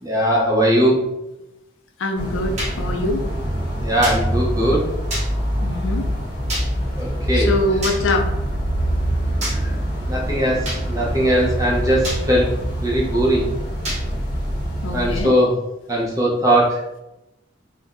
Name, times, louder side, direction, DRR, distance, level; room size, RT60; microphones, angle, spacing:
voice 1, 0.0-1.0 3.8-4.9 7.0-7.5 9.6-9.7 10.1-12.5 12.8-13.5 14.9-15.6 15.9-16.8, equal, 20° right, -4 dB, 0.6 m, -19 dB
voice 2, 2.0-3.2 5.6-6.0 7.3-8.3 14.8-15.3, left 2 dB, 80° left, 3 dB, 0.4 m, -23 dB
sound 1, 2.2-15.2, equal, 55° left, 0.8 m, -25 dB
sound 2, 2.6-2.7 4.0-4.2 5.1-5.3 6.5-6.7 7.8-8.0 9.4-9.6 10.7-10.8 12.0-12.2 13.9-14.0, right 1 dB, 35° right, 0.9 m, -26 dB
3.6 x 2.1 x 2.5 m, 0.93 s
head